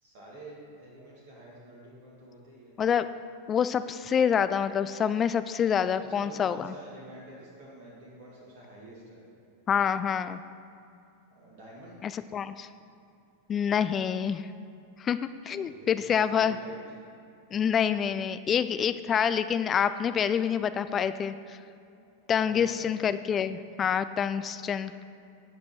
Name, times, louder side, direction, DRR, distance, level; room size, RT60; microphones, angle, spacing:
voice 1, 0.0-2.8 6.1-9.2 11.3-12.0 15.5-16.0 16.4-16.8 22.4-22.9, right 1 dB, 50° right, -5 dB, 2.3 m, -48 dB
voice 2, 3.5-6.7 9.7-10.4 12.0-12.7 13.5-14.5 15.0-16.6 17.5-21.6 22.3-25.0, left 8 dB, 25° left, 13 dB, 0.3 m, -27 dB
11.0 x 5.3 x 6.1 m, 2.7 s
figure-of-eight pair, 90°, 0 cm